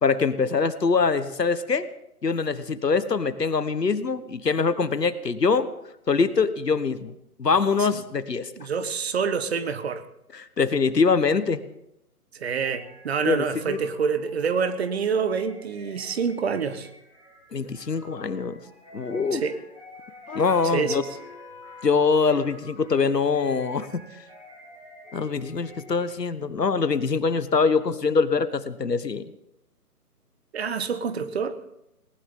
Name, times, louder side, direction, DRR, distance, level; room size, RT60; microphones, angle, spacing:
voice 1, 0.0-1.9 2.2-5.7 6.1-7.1 7.4-8.5 10.3-11.6 13.2-13.8 17.5-18.6 18.9-19.4 20.3-21.0 21.8-24.0 25.1-29.2, left 5 dB, 90° left, 13 dB, 1.4 m, -23 dB
voice 2, 8.6-10.0 12.3-16.9 19.3-19.6 20.6-21.1 30.5-31.6, right 6 dB, 40° right, 12 dB, 1.2 m, -27 dB
sound 1, 12.6-26.2, left 1 dB, 10° right, 3.4 m, -49 dB
sound 2, 20.3-22.5, left 4 dB, 65° left, 3.0 m, -41 dB
19.5 x 19.0 x 3.8 m, 0.84 s
figure-of-eight pair, 145°, 47 cm